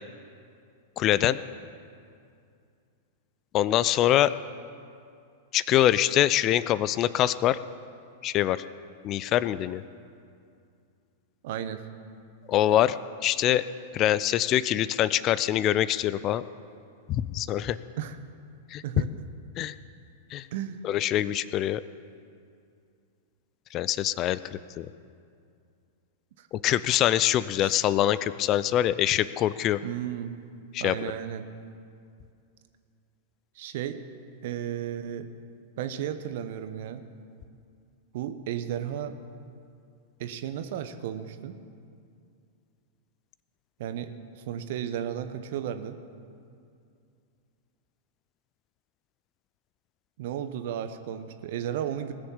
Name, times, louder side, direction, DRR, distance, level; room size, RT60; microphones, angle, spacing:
voice 1, 1.0-1.4 3.5-4.3 5.5-7.6 8.2-8.6 9.0-9.8 12.5-13.0 13.2-13.6 13.9-16.4 17.1-17.8 18.7-18.8 19.6-19.7 20.3-20.5 20.8-21.8 23.7-24.9 26.6-29.8 30.7-31.1, left 12 dB, 35° left, 16 dB, 0.4 m, -24 dB
voice 2, 11.4-11.8 18.0-18.2 18.8-19.3 20.5-20.8 26.4-26.5 27.6-27.8 29.8-30.3 30.8-31.5 33.5-34.0 34.4-35.3 35.8-37.0 38.1-39.1 40.2-41.6 43.8-45.9 50.2-52.1, right 10 dB, 55° right, 10 dB, 1.0 m, -34 dB
19.0 x 6.9 x 7.3 m, 2.4 s
figure-of-eight pair, 95°, 0 cm